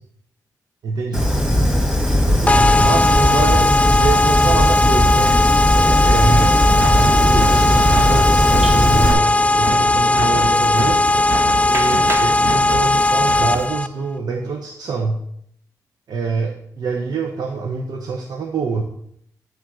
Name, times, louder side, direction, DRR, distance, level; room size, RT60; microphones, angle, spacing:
voice 1, 0.8-1.4 2.3-5.4 5.7-9.3 9.6-11.0 11.6-15.2 16.1-18.8, right 4 dB, 75° right, 3 dB, 0.8 m, -25 dB
Fire, 1.1-9.1, equal, 10° right, 1.9 m, -18 dB
sound 1, 2.5-13.9, left 2 dB, 20° left, 0.3 m, -17 dB
sound 2, 6.4-13.7, right 3 dB, 40° right, 0.7 m, -27 dB
8.9 x 3.4 x 6.3 m, 0.69 s
cardioid pair, 85°, 7 cm